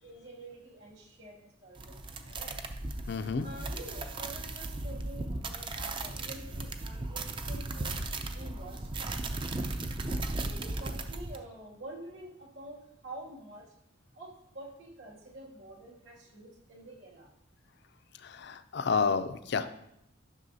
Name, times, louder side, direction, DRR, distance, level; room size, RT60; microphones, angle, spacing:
voice 1, 0.0-2.6 3.4-8.0 8.3-9.4 10.1-12.8 13.0-13.7 14.1-17.3, right 1 dB, 70° right, -2 dB, 2.3 m, -48 dB
sound 1, 1.7-11.4, right 2 dB, 25° right, 0.4 m, -36 dB
voice 2, 3.1-3.5 18.2-19.7, left 5 dB, 55° left, 10 dB, 0.4 m, -30 dB
11.0 x 6.2 x 2.7 m, 0.79 s
head